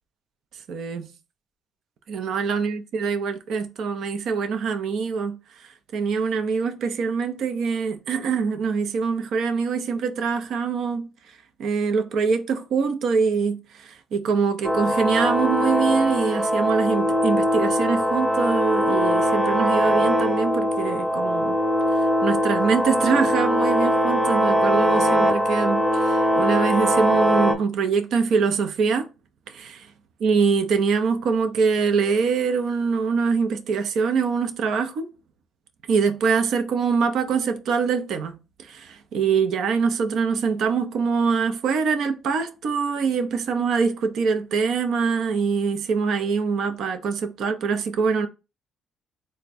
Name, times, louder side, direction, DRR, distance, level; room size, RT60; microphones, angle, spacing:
voice 1, 0.7-1.1 2.1-5.4 5.9-11.1 11.6-21.6 22.2-29.1 29.5-29.9 30.2-35.1 35.9-48.3, right 5 dB, 75° right, 0.6 m, -24 dB
sound 1, 14.6-27.6, equal, 10° right, 0.7 m, -21 dB
3.4 x 2.2 x 4.1 m
cardioid pair, 90°, 0 cm